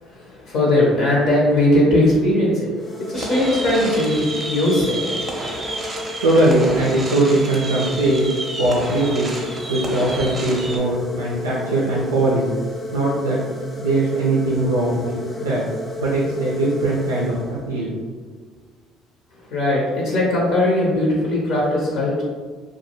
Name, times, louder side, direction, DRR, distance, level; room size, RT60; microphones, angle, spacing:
voice 1, 0.0-6.1 19.3-22.2, left 1 dB, 65° left, -5 dB, 0.8 m, -20 dB
sound 1, 2.7-18.0, left 2 dB, 25° left, 0.5 m, -33 dB
sound 2, 3.1-10.8, right 2 dB, 30° right, 0.6 m, -30 dB
voice 2, 5.9-8.3 8.6-9.3 9.7-12.5 12.9-13.4 13.8-15.6 16.0-17.9, right 2 dB, 85° right, -5 dB, 0.4 m, -20 dB
2.3 x 2.3 x 2.9 m, 1.5 s
hypercardioid pair, 55°, 0 cm